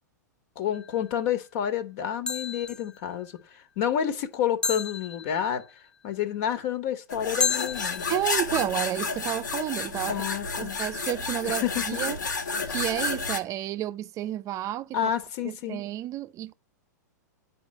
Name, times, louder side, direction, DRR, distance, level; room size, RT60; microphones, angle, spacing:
voice 1, 0.5-5.6 6.0-8.0 10.1-10.8 11.5-11.8 14.9-15.8, left 9 dB, 55° left, 1.7 m, -29 dB
sound 1, 0.7-1.1 2.3-3.0 4.6-5.7 7.4-8.4, left 5 dB, 10° left, 0.6 m, -31 dB
sound 2, 7.1-13.4, left 4 dB, 90° left, 2.1 m, -31 dB
voice 2, 8.1-10.3 10.6-12.2 12.7-15.1 15.4-16.5, right 13 dB, 35° right, 0.6 m, -31 dB
9.7 x 4.8 x 7.7 m
hypercardioid pair, 110°, 10 cm